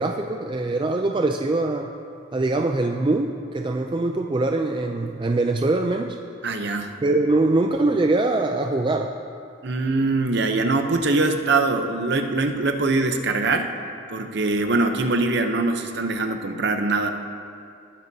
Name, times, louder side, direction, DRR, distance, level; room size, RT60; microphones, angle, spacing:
voice 1, 0.0-1.9 2.3-6.2 7.0-9.1, right 2 dB, 25° right, 4 dB, 0.3 m, -23 dB
voice 2, 6.4-6.9 9.6-13.7 14.1-17.1, right 3 dB, 55° right, 6 dB, 0.7 m, -23 dB
19.0 x 9.8 x 2.8 m, 2.4 s
head